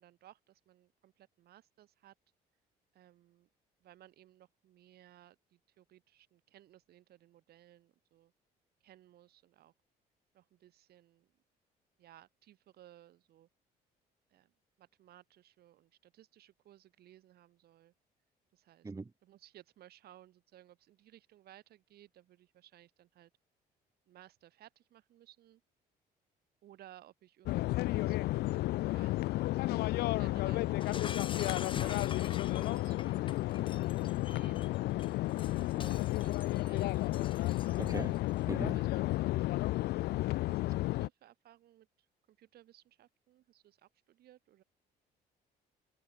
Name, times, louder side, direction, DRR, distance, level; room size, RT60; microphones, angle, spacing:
voice 1, 0.0-2.1 2.9-3.5 3.8-8.3 8.8-9.7 10.3-11.3 12.0-13.5 14.3-14.5 14.8-17.9 18.5-18.9 19.2-23.3 24.1-25.6 26.6-29.5 30.0-30.9 31.6-33.5 34.1-34.8 35.4-36.9 37.9-38.3 38.7-44.6, right 13 dB, 70° right, 7.8 m, -60 dB
sound 1, 27.5-41.1, left 18 dB, 70° left, 0.5 m, -32 dB
Shatter, 30.8-38.2, left 6 dB, 30° left, 1.1 m, -46 dB
voice 2, 37.8-38.2 38.5-38.8, right 3 dB, 20° right, 2.9 m, -39 dB
cardioid pair, 110°, 17 cm